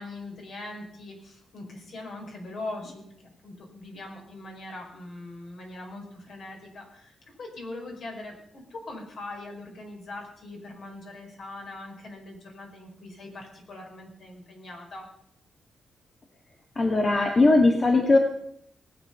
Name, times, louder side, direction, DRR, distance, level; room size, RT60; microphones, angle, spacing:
voice 1, 0.0-7.1 7.4-15.1, left 2 dB, 60° left, 1 dB, 5.0 m, -41 dB
voice 2, 16.8-18.2, left 2 dB, 35° left, 2 dB, 1.8 m, -19 dB
19.0 x 8.6 x 5.8 m, 0.71 s
cardioid pair, 95°, 0 cm